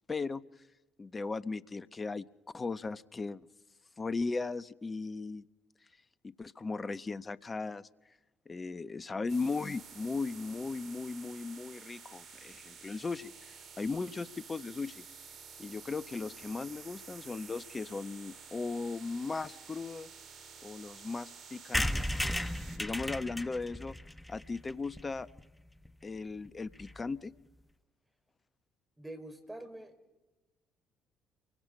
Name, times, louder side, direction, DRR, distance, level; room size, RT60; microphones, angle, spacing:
voice 1, 0.1-0.4 1.0-2.2 2.5-3.4 4.0-5.4 6.2-7.9 8.5-15.0 15.6-20.1 20.6-22.0 22.8-23.9 24.3-25.3 26.0-27.3, left 4 dB, 30° left, 15 dB, 1.1 m, -37 dB
sound 1, 9.3-22.8, right 6 dB, 60° right, 3.4 m, -51 dB
sound 2, 21.7-25.4 25.9-26.0 26.1-26.2 26.5-26.6 26.8-27.0, left 1 dB, 10° left, 1.0 m, -35 dB
voice 2, 22.7-23.1 29.0-29.9, right 1 dB, 10° right, 5 dB, 5.6 m, -47 dB
30.0 x 24.0 x 5.6 m, 1.1 s
hypercardioid pair, 55°, 0 cm